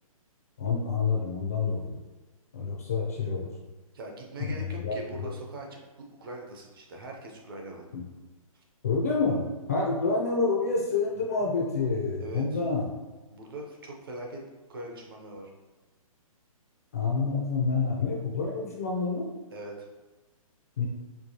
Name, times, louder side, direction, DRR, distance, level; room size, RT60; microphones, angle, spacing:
voice 1, 0.6-2.0 2.5-3.5 4.4-5.3 7.9-8.0 8.8-12.9 16.9-19.3 20.8-20.9, left 4 dB, 25° left, -2 dB, 0.4 m, -28 dB
voice 2, 3.9-7.9 8.5-8.6 12.2-12.6 13.3-14.4 14.7-15.5 19.5-19.9, right 1 dB, 40° right, 0 dB, 0.6 m, -41 dB
4.5 x 2.3 x 2.7 m, 1.2 s
hypercardioid pair, 170°, 19 cm